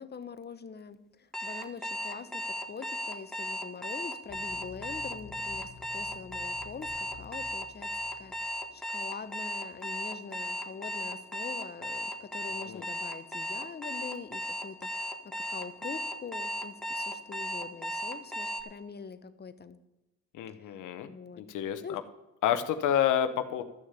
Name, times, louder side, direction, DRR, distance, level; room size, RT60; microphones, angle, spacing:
voice 1, 0.0-8.3 8.7-19.8 20.6-22.0, left 6 dB, 35° left, 12 dB, 1.0 m, -44 dB
Alarm, 1.3-18.6, equal, ahead, 1.5 m, -36 dB
sound 1, 4.3-9.0, left 5 dB, 55° left, 1.8 m, -51 dB
voice 2, 20.3-21.1 21.4-22.0 22.4-23.6, left 10 dB, 85° left, 9 dB, 0.9 m, -29 dB
13.0 x 6.5 x 8.2 m, 0.99 s
cardioid pair, 90°, 30 cm